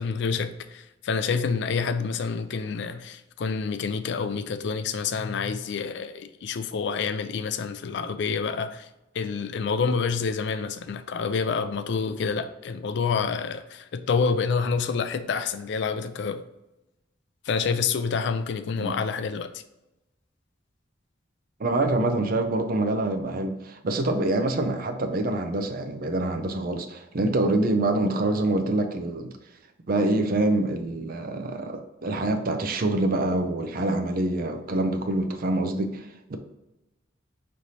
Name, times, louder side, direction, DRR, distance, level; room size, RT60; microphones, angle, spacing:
voice 1, 0.0-8.9 9.1-16.4 17.5-19.6, left 5 dB, 65° left, 0.4 m, -28 dB
voice 2, 21.6-29.3 29.9-36.4, right 2 dB, 50° right, 0.5 m, -26 dB
5.3 x 3.2 x 2.8 m
head